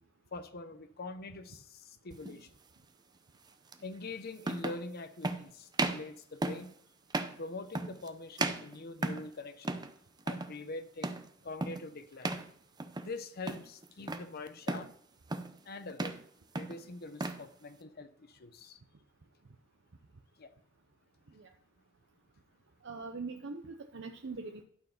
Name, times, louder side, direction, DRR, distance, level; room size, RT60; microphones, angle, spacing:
voice 1, 0.3-2.5 3.8-6.7 7.4-9.8 10.3-11.1 11.4-12.3 13.0-14.9 15.6-16.1 16.5-18.8 20.4-20.5, left 3 dB, 50° left, 10 dB, 0.7 m, -44 dB
sound 1, 2.2-2.4 3.7-3.8 4.4-4.8 5.2-5.4 5.7-6.1 6.4-6.7 7.1-7.4 7.7-8.1 8.4-9.3 9.6-9.9 10.2-10.5 11.0-11.3 11.6-11.9 12.2-12.5 12.8-13.2 13.5-14.3 14.7-14.9 15.3-15.6 15.9-16.2 16.5-17.4, right 2 dB, 20° right, 0.6 m, -35 dB
voice 2, 22.8-24.6, right 4 dB, 65° right, 5 dB, 0.7 m, -42 dB
12.0 x 4.6 x 5.8 m, 0.62 s
head